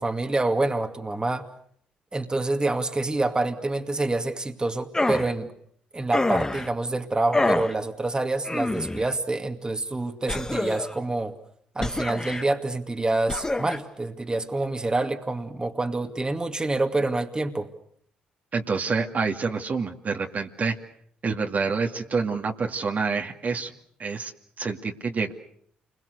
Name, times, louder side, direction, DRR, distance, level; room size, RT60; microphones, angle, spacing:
voice 1, 0.0-1.4 2.1-5.5 5.9-11.4 11.8-17.7, right 2 dB, 20° right, 6 dB, 2.3 m, -27 dB
sound 1, 4.9-5.3 6.1-6.7 7.3-7.7 8.4-9.1 10.3-11.0 11.8-12.5 13.3-13.8, left 2 dB, 15° left, 1.8 m, -26 dB
voice 2, 18.5-20.8 21.2-23.7 24.0-24.3 24.6-25.3, right 4 dB, 45° right, 3 dB, 2.4 m, -27 dB
29.0 x 22.0 x 6.7 m, 0.64 s
hypercardioid pair, 55°, 4 cm